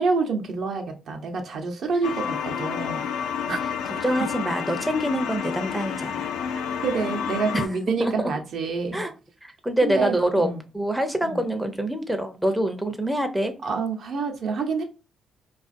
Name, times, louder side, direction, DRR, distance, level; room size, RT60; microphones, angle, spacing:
voice 1, 0.0-3.1 3.5-3.6 6.8-9.0 9.8-10.6 11.2-11.4 13.6-14.8, right 4 dB, 65° right, 0.6 m, -27 dB
sound 1, 2.0-7.7, left 7 dB, 90° left, 0.3 m, -30 dB
voice 2, 3.8-6.4 7.5-8.3 8.9-9.1 9.4-10.5 10.7-13.5, right 1 dB, 5° right, 0.4 m, -26 dB
2.4 x 2.4 x 2.5 m
cardioid pair, 90°, 0 cm